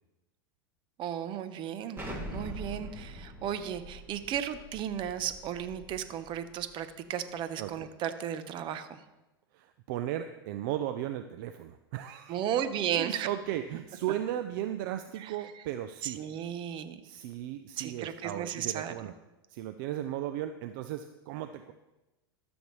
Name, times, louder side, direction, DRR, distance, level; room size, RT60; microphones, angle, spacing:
voice 1, 1.0-2.0 2.3-9.0 12.3-13.3 16.0-17.0 17.8-18.9, right 9 dB, 40° right, 11 dB, 0.9 m, -34 dB
Explosion, 2.0-6.7, equal, 15° right, 2.1 m, -43 dB
voice 2, 7.6-7.9 9.5-12.4 12.9-16.2 17.0-19.1 19.5-21.7, right 12 dB, 55° right, 9 dB, 0.5 m, -36 dB
13.0 x 7.1 x 3.2 m, 1.0 s
hypercardioid pair, 100°, 13 cm